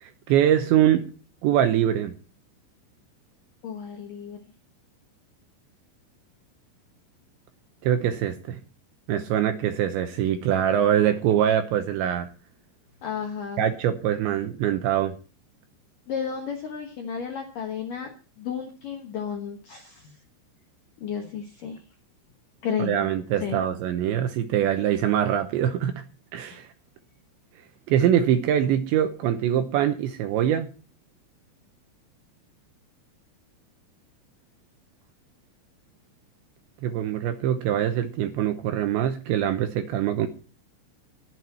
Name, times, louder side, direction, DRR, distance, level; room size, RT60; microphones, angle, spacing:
voice 1, 0.0-1.1 1.4-2.1 7.8-8.6 9.1-12.3 13.6-15.2 22.8-26.0 26.3-26.7 27.9-30.7 36.8-40.3, right 10 dB, 75° right, 7 dB, 2.9 m, -23 dB
voice 2, 3.6-4.4 13.0-13.6 16.1-20.2 21.0-21.8 22.6-23.0 23.4-23.6 26.5-26.6, left 7 dB, 65° left, 2 dB, 2.2 m, -33 dB
20.5 x 8.0 x 4.3 m, 0.36 s
omnidirectional pair, 5.7 m